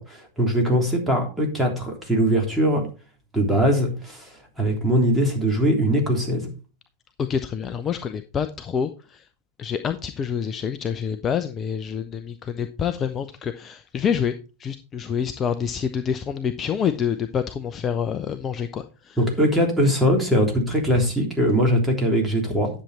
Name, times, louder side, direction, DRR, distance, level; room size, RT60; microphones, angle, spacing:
voice 1, 0.0-2.9 3.3-4.3 4.6-6.5 19.2-22.7, equal, 5° right, 1 dB, 3.4 m, -21 dB
voice 2, 7.3-9.2 9.6-14.3 14.6-19.2, left 7 dB, 25° left, 9 dB, 0.7 m, -27 dB
10.5 x 7.4 x 4.2 m, 0.33 s
figure-of-eight pair, 90°, 0 cm